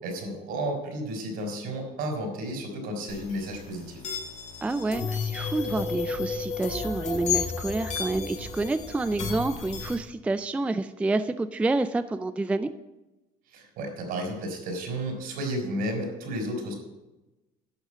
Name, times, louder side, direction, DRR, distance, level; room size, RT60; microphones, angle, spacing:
voice 1, 0.0-4.0 13.5-16.7, right 1 dB, 70° right, 3 dB, 3.8 m, -32 dB
sound 1, 3.1-9.9, left 5 dB, 45° left, 2.2 m, -33 dB
voice 2, 4.6-12.7, right 2 dB, 10° right, 11 dB, 0.3 m, -28 dB
11.5 x 6.4 x 7.3 m, 1.0 s
cardioid pair, 140°, 16 cm